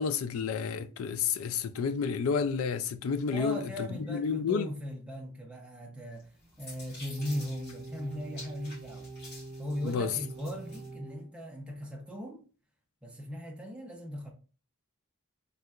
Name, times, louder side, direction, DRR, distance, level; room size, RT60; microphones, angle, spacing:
voice 1, 0.0-4.7 9.8-10.1, left 6 dB, 75° left, 0.3 m, -30 dB
voice 2, 3.3-6.3 6.6-9.1 9.6-12.5 13.0-14.3, equal, 5° right, 0.7 m, -38 dB
sound 1, 6.2-10.9, left 2 dB, 50° left, 1.7 m, -50 dB
sound 2, 7.2-11.3, right 3 dB, 65° right, 0.6 m, -44 dB
3.4 x 2.8 x 2.4 m
head